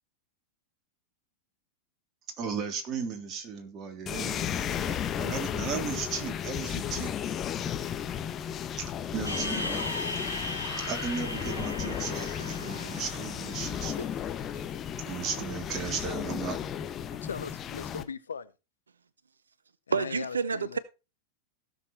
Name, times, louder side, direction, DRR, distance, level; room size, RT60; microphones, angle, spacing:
voice 1, 2.4-7.4 8.8-9.9 10.8-14.1 15.0-16.6, right 6 dB, 30° right, 3.4 m, -36 dB
sound 1, 4.1-18.0, left 9 dB, 25° left, 1.1 m, -34 dB
sound 2, 9.2-14.6, left 1 dB, 90° left, 3.1 m, -37 dB
voice 2, 17.1-18.5 19.9-20.8, left 6 dB, 70° left, 0.8 m, -39 dB
voice 3, 19.9-20.8, right 5 dB, 75° right, 0.6 m, -29 dB
16.0 x 7.1 x 4.4 m
figure-of-eight pair, 90°, 0 cm